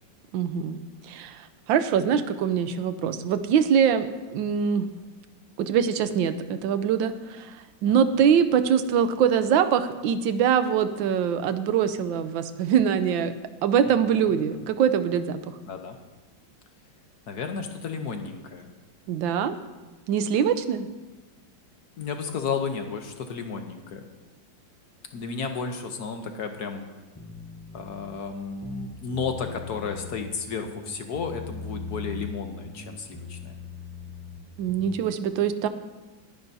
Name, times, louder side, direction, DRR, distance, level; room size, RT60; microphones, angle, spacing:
voice 1, 0.3-0.8 1.1-4.9 5.6-7.6 7.8-13.3 13.6-15.6 19.1-19.5 20.1-20.9 34.6-35.7, right 8 dB, 80° right, 11 dB, 1.4 m, -23 dB
voice 2, 13.8-14.7 15.7-16.0 17.3-18.7 22.0-24.0 25.1-26.9 27.7-33.5, left 5 dB, 60° left, 5 dB, 1.3 m, -33 dB
sound 1, 27.1-28.2 28.6-30.3 30.7-32.4 32.6-35.0, left 3 dB, 20° left, 0.5 m, -40 dB
20.5 x 10.5 x 2.7 m, 1.2 s
omnidirectional pair, 2.1 m